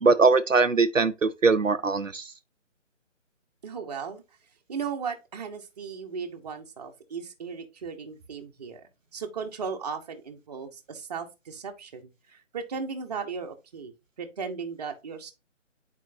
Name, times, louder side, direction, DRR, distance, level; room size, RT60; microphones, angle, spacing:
voice 1, 0.0-2.2, right 4 dB, 90° right, 0.8 m, -21 dB
voice 2, 3.6-4.2 4.7-13.9 14.2-15.3, right 5 dB, 35° right, 1.1 m, -36 dB
9.2 x 4.6 x 2.7 m
figure-of-eight pair, 145°, 38 cm